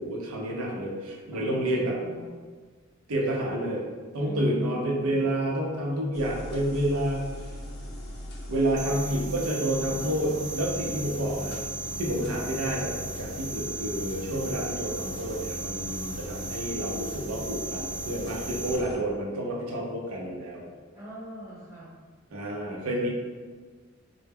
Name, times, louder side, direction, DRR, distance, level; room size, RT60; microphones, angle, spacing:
voice 1, 0.0-1.9 3.1-3.8 4.1-7.2 8.5-11.6 12.0-20.6 22.3-23.1, right 1 dB, 90° right, -2 dB, 0.6 m, -29 dB
voice 2, 1.3-2.3 4.2-5.2 20.9-21.9, right 1 dB, 15° right, -10 dB, 1.0 m, -42 dB
sound 1, 6.1-19.0, left 1 dB, 50° left, 0.4 m, -40 dB
sound 2, 8.8-18.8, right 2 dB, 40° right, 0.3 m, -37 dB
2.1 x 2.0 x 3.4 m, 1.5 s
head